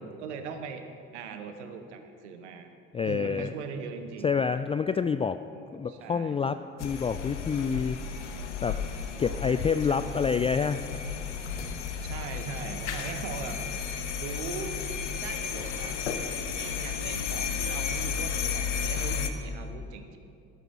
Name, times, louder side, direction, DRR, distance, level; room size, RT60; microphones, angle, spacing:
voice 1, 0.2-0.8 1.1-2.7 3.0-4.4 5.4-5.5 5.9-6.4 9.2-9.5 9.9-10.3 12.0-13.7 14.2-14.8 15.2-16.0 16.4-20.2, right 6 dB, 75° right, 7 dB, 1.1 m, -40 dB
voice 2, 2.9-3.5 4.2-5.4 5.7-8.0 8.6-8.9 9.2-10.9, left 6 dB, 15° left, 10 dB, 0.3 m, -28 dB
sound 1, 6.8-19.3, left 6 dB, 85° left, 0.8 m, -33 dB
13.0 x 12.5 x 4.6 m, 2.4 s
figure-of-eight pair, 50°, 35 cm